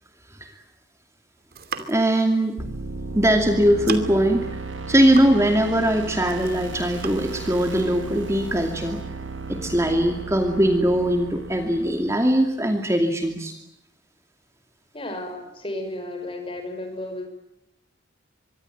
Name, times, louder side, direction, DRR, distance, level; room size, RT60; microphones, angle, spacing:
sound 1, 1.4-2.2 3.2-3.3 3.6-4.3 4.7-5.7 5.9-6.6 7.0-7.2, right 5 dB, 50° right, 2.8 m, -36 dB
voice 1, 1.8-2.6 3.1-4.6 4.9-9.0 9.5-13.5, right 1 dB, 15° right, 5 dB, 2.5 m, -21 dB
sound 2, 2.6-12.4, right 3 dB, 80° right, 3.4 m, -35 dB
voice 2, 14.9-17.3, left 1 dB, 25° left, 6 dB, 5.9 m, -33 dB
25.0 x 24.0 x 9.2 m, 0.82 s
head